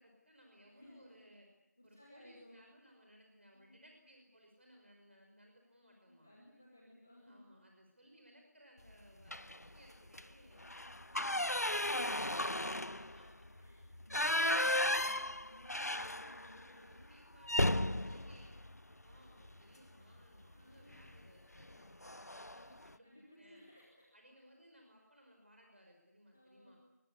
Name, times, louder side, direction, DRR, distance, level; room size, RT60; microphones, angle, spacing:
voice 1, 0.0-1.5 1.8-6.4 7.3-10.6 11.1-13.5 16.7-18.6 19.0-23.6 24.1-26.8, equal, 40° right, 2 dB, 5.5 m, -63 dB
voice 2, 0.6-1.2 1.8-2.6 3.5-3.8 6.1-7.5 10.6-11.6 13.6-17.1 20.5-21.1 23.0-24.1 26.3-26.7, left 1 dB, 5° left, -2 dB, 1.1 m, -60 dB
sound 1, 9.3-9.7 10.1-10.2 10.6-16.6 16.9-17.0 17.4-19.6 20.9-21.2 21.6-21.7 22.0-22.6, left 1 dB, 65° left, 1.0 m, -35 dB
25.0 x 21.0 x 8.5 m, 1.0 s
figure-of-eight pair, 175°, 9 cm